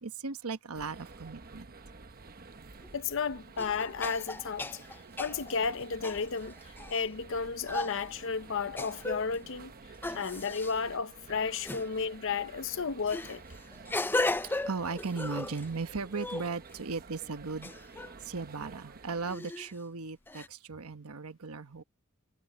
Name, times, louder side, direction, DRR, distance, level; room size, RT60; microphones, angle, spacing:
voice 1, 0.0-1.7 10.1-10.2 14.4-17.7 18.2-21.8, right 4 dB, 75° right, 1.1 m, -37 dB
sound 1, 0.7-19.3, right 4 dB, 40° right, 1.0 m, -51 dB
sound 2, 2.8-2.9 3.6-7.0 7.7-8.1 8.8-9.4 10.0-10.7 11.6-11.9 13.1-15.7 16.1-16.9 17.6-18.2 19.3-19.8 20.3-20.5, left 2 dB, 10° left, 0.5 m, -36 dB
voice 2, 2.9-4.7 5.2-6.5 6.9-9.7 10.1-13.4, left 5 dB, 60° left, 0.8 m, -33 dB
head